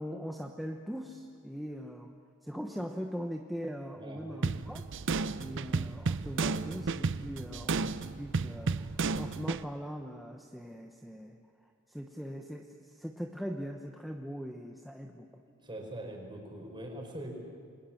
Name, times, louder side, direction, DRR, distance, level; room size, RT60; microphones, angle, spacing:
voice 1, 0.0-4.8 5.3-15.4, equal, ahead, 2 dB, 1.0 m, -41 dB
voice 2, 4.0-4.5 15.6-17.3, right 1 dB, 20° right, 1 dB, 4.8 m, -42 dB
sound 1, 4.4-9.6, right 4 dB, 60° right, 0.7 m, -32 dB
29.5 x 21.5 x 7.3 m, 2.4 s
head